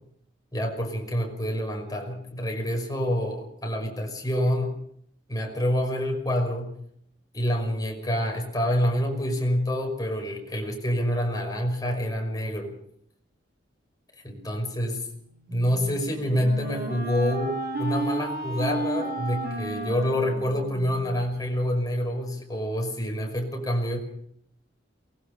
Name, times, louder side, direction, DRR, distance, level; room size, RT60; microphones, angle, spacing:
voice 1, 0.5-4.7 5.3-6.7 7.3-12.7 14.2-15.1 15.5-24.0, equal, 20° left, 2 dB, 5.6 m, -27 dB
Wind instrument woodwind instrument, 15.5-21.3, right 2 dB, 55° right, 5.3 m, -33 dB
23.5 x 21.5 x 5.5 m, 0.68 s
head